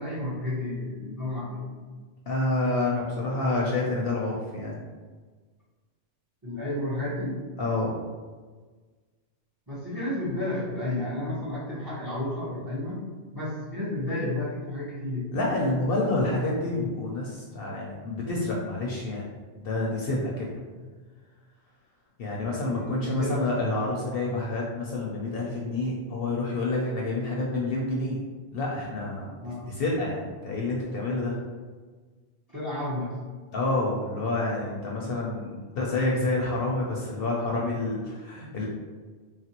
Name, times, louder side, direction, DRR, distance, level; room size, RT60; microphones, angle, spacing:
voice 1, 0.0-1.7 6.4-7.4 9.7-13.0 13.3-15.3 20.7-20.9 22.3-23.6 29.4-29.7 32.5-33.2, left 1 dB, 25° right, -7 dB, 0.5 m, -32 dB
voice 2, 2.3-4.8 7.6-7.9 15.3-19.2 19.6-20.6 22.2-28.2 28.5-31.4 33.5-38.7, left 2 dB, 60° left, -3 dB, 0.6 m, -28 dB
3.1 x 2.4 x 2.8 m, 1.4 s
omnidirectional pair, 1.3 m